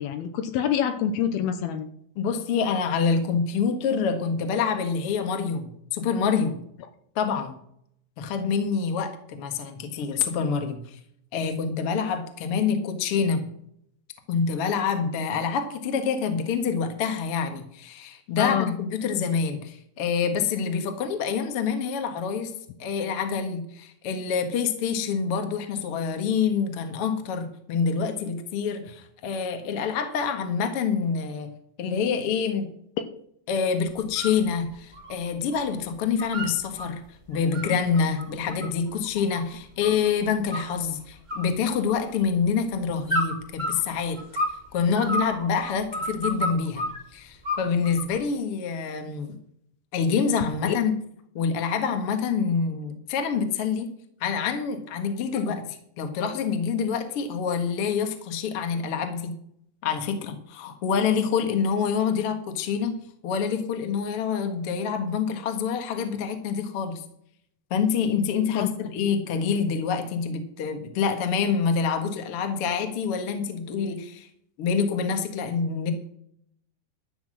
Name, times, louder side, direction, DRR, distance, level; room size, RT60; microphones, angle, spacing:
voice 1, 0.0-1.9 18.4-18.8 50.7-50.8 55.5-55.6 68.6-68.7, left 9 dB, 80° left, 8 dB, 2.6 m, -26 dB
voice 2, 2.1-6.6 7.1-7.6 8.2-11.0 11.3-13.5 14.3-22.5 22.8-31.5 31.8-32.7 33.5-37.0 37.3-44.2 44.7-46.9 47.1-49.4 49.9-51.0 51.3-53.9 54.2-59.3 59.8-63.0 63.2-67.0 67.7-74.3 74.6-75.9, left 6 dB, 55° left, 6 dB, 1.6 m, -26 dB
sound 1, 34.0-34.4 34.7-35.7 35.9-36.9 37.3-40.1 40.5-41.0 41.3-42.3 43.1-44.6 44.9-47.0 47.4-48.2, equal, 20° right, 1.4 m, -31 dB
13.0 x 6.1 x 7.5 m, 0.69 s
omnidirectional pair, 4.8 m